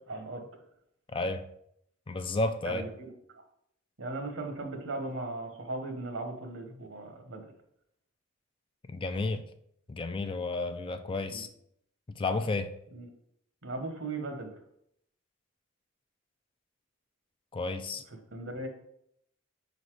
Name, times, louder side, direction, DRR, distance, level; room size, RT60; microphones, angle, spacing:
voice 1, 0.1-0.4 2.6-3.1 4.0-7.4 11.3-11.4 12.9-13.1 13.6-14.5 18.3-18.7, right 2 dB, 65° right, 4 dB, 1.1 m, -37 dB
voice 2, 1.1-1.4 2.1-2.8 8.9-9.4 9.9-11.5 12.2-12.7 17.5-18.0, left 2 dB, 25° left, 9 dB, 0.4 m, -32 dB
5.2 x 4.1 x 4.7 m, 0.72 s
head